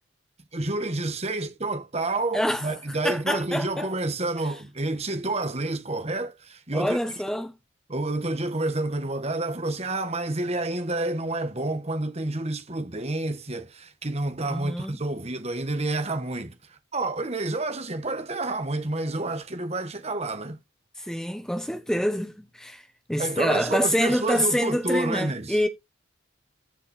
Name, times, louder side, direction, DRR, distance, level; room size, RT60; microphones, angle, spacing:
voice 1, 0.5-7.0 7.9-20.6 23.2-25.6, right 2 dB, 30° right, 1.4 m, -29 dB
voice 2, 3.0-3.9 6.7-7.5 14.5-15.0 21.1-22.8 23.1-25.7, equal, 5° left, 1.3 m, -26 dB
14.0 x 4.9 x 4.4 m
head